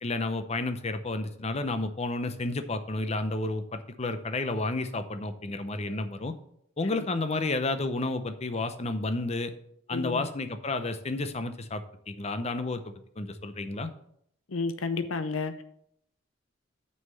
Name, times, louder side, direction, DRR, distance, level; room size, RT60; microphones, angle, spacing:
voice 1, 0.0-6.3 6.8-9.5 9.9-13.9, left 2 dB, 30° left, 10 dB, 0.6 m, -31 dB
voice 2, 9.9-10.3 14.5-15.6, left 4 dB, 85° left, 10 dB, 0.7 m, -31 dB
6.4 x 5.5 x 6.8 m, 0.71 s
head